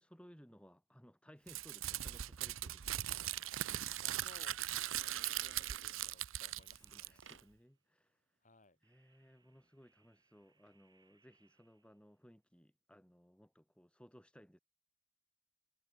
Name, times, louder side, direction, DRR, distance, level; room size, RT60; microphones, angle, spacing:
voice 1, 0.0-3.1 6.8-8.2 8.8-14.6, equal, 5° left, 7.3 m, -61 dB
Crumpling crinkling, 1.5-7.4, right 13 dB, 85° right, 0.7 m, -40 dB
sound 1, 2.8-2.9 3.4-3.5 4.1-6.1 7.2-7.4 10.7-10.8 11.0-11.1, right 7 dB, 65° right, 3.6 m, -54 dB
voice 2, 4.0-7.2 8.4-8.8, left 2 dB, 40° left, 4.6 m, -62 dB
sound 2, 4.5-7.8 8.8-12.2, right 4 dB, 20° right, 5.5 m, -78 dB
head